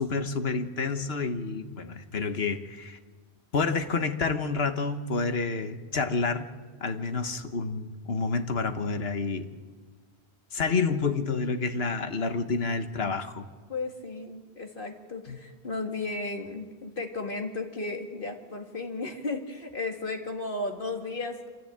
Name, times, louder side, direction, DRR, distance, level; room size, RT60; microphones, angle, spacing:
voice 1, 0.0-3.0 3.5-6.5 6.8-9.5 10.5-13.5 15.3-15.4, left 4 dB, 75° left, 8 dB, 1.5 m, -29 dB
voice 2, 13.7-21.5, left 3 dB, 55° left, 3 dB, 2.3 m, -34 dB
26.5 x 14.5 x 8.6 m, 1.4 s
omnidirectional pair, 1.1 m